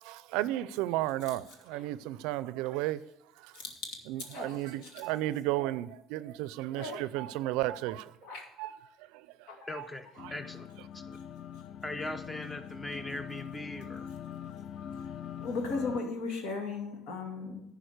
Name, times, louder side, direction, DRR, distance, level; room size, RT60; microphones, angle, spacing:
voice 1, 0.0-3.0 3.4-3.6 4.1-8.2 8.6-8.7 9.0-9.9 10.2-10.3, right 15 dB, 85° right, 0.4 m, -34 dB
voice 2, 9.7-10.7 10.9-11.2 11.8-14.1, left 2 dB, 15° left, 0.8 m, -40 dB
sound 1, 10.2-16.0, left 8 dB, 50° left, 0.4 m, -43 dB
voice 3, 15.4-17.6, left 4 dB, 75° left, 2.2 m, -36 dB
10.0 x 4.9 x 6.4 m
cardioid pair, 100°, 0 cm